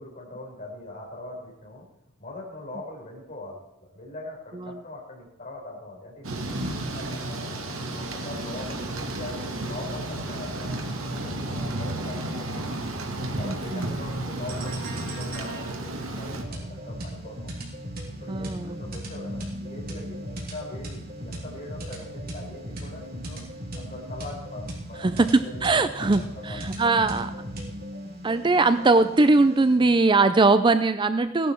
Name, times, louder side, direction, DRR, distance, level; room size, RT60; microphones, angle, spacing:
voice 1, 0.0-1.8 2.2-7.5 7.8-12.7 13.2-17.5 18.2-23.4 23.7-26.9 27.2-27.3, left 2 dB, 40° left, -1 dB, 4.5 m, -41 dB
Thunder / Rain, 6.2-16.4, right 1 dB, 85° right, 2.1 m, -32 dB
voice 2, 13.4-14.0 18.3-18.8 25.0-27.3 28.2-31.5, right 3 dB, 25° right, 11 dB, 0.4 m, -21 dB
sound 1, 14.5-29.8, equal, 45° right, 3.4 m, -37 dB
16.5 x 11.5 x 4.5 m, 0.90 s
head